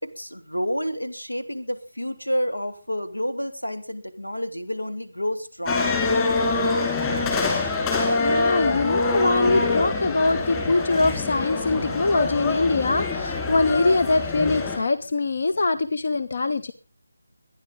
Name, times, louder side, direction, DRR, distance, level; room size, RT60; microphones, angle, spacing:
voice 1, 0.0-6.0, equal, 85° left, 7 dB, 2.4 m, -29 dB
sound 1, 5.7-14.8, left 3 dB, 15° left, 2.7 m, -25 dB
voice 2, 8.2-16.7, left 3 dB, 45° left, 11 dB, 0.7 m, -23 dB
23.5 x 10.5 x 3.8 m, 0.33 s
figure-of-eight pair, 155°, 0 cm